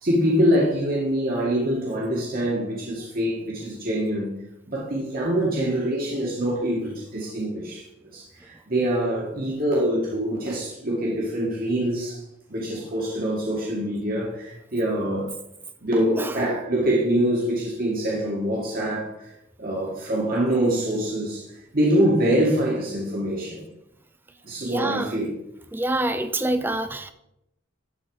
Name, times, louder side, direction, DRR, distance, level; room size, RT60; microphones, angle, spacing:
voice 1, 0.0-4.3 4.7-7.8 8.1-12.2 12.5-15.3 15.8-19.1 19.6-21.5 21.7-23.6 24.4-25.3, right 1 dB, 45° right, -4 dB, 1.8 m, -24 dB
voice 2, 24.6-25.1 25.7-27.1, right 1 dB, 10° right, 10 dB, 0.4 m, -26 dB
12.0 x 4.3 x 4.8 m, 0.82 s
head